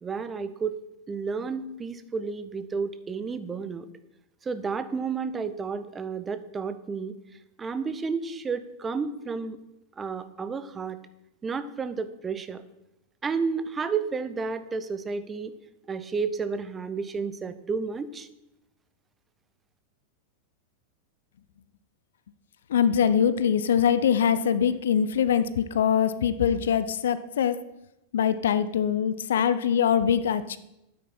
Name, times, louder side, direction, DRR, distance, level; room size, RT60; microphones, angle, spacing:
voice 1, 0.0-0.8 1.1-3.9 4.4-7.1 7.6-9.6 10.0-11.0 11.4-12.6 13.2-15.5 15.9-18.3, right 5 dB, 20° right, 12 dB, 0.9 m, -31 dB
voice 2, 22.7-27.6 28.1-30.6, left 8 dB, 60° left, 14 dB, 0.6 m, -23 dB
12.5 x 9.6 x 4.4 m, 0.87 s
figure-of-eight pair, 90°, 0 cm